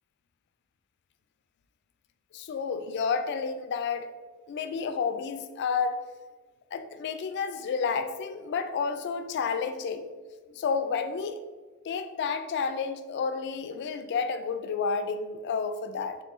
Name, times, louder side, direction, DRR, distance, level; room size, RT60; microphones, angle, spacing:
voice 1, 2.3-4.1 4.5-6.0 6.7-10.1 10.5-11.4 11.8-16.2, left 5 dB, 55° left, 10 dB, 0.3 m, -30 dB
4.3 x 3.2 x 3.0 m, 1.4 s
head